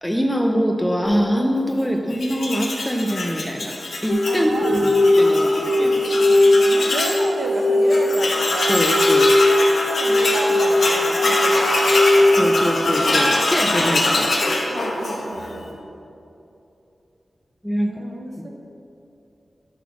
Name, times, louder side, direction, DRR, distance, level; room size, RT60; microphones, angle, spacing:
voice 1, 0.0-6.0 8.7-9.3 12.4-14.4 17.6-17.9, equal, 5° left, 1 dB, 0.6 m, -23 dB
Tools, 2.1-7.2 7.6-7.7 7.9-15.5, left 2 dB, 75° left, 1.5 m, -23 dB
sound 1, 4.1-12.3, left 1 dB, 45° left, 0.9 m, -19 dB
voice 2, 4.2-8.8 9.9-12.7 14.7-15.8 17.8-18.5, right 2 dB, 60° right, 1 dB, 1.0 m, -32 dB
12.0 x 4.1 x 5.9 m, 2.8 s
wide cardioid pair, 125°, 0 cm